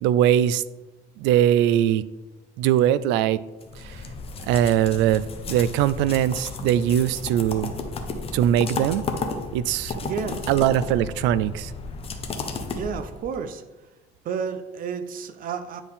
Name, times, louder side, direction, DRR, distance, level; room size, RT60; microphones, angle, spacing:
voice 1, 0.0-0.6 1.2-2.0 2.6-3.4 3.8-4.0 4.5-5.2 5.5-7.7 8.3-9.0 9.5-10.0 10.5-11.7, right 11 dB, 85° right, 17 dB, 0.4 m, -21 dB
sound 1, 3.6-13.4, left 4 dB, 30° left, 0.9 m, -33 dB
voice 2, 10.0-10.5 12.7-13.6 14.2-15.8, right 6 dB, 50° right, 9 dB, 0.7 m, -31 dB
9.8 x 4.4 x 3.6 m, 1.1 s
cardioid pair, 135°, 18 cm